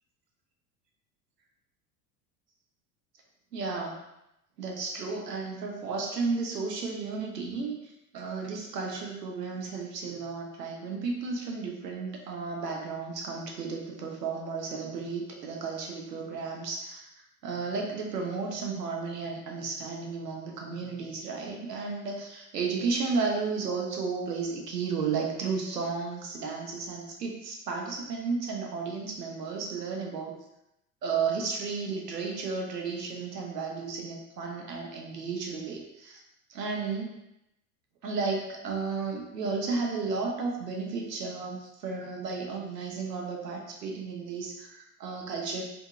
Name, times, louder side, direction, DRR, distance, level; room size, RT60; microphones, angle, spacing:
voice 1, 3.5-4.0 4.6-17.1 17.4-30.4 31.0-36.2 36.5-37.1 38.0-45.6, right 4 dB, 80° right, 0 dB, 0.7 m, -33 dB
2.8 x 2.7 x 2.4 m, 0.85 s
figure-of-eight pair, 75°, 49 cm